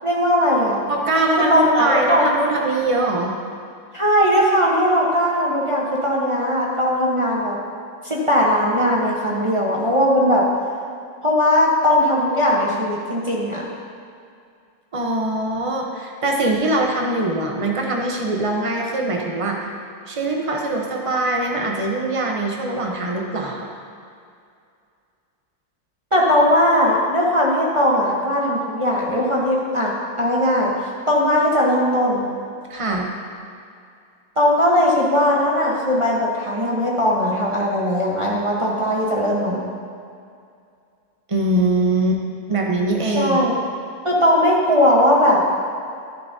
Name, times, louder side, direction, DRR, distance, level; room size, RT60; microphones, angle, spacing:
voice 1, 0.0-0.8 1.5-2.3 3.9-7.6 8.0-10.4 11.2-13.6 26.1-30.7 31.1-32.3 34.4-39.7 43.1-43.6 44.0-45.4, equal, 20° right, -4 dB, 0.8 m, -19 dB
voice 2, 0.9-3.4 14.9-19.7 20.1-23.7 32.7-33.1 41.3-42.2 42.5-43.4, right 2 dB, 40° right, 0 dB, 0.5 m, -22 dB
10.5 x 10.5 x 2.7 m, 2.4 s
omnidirectional pair, 2.0 m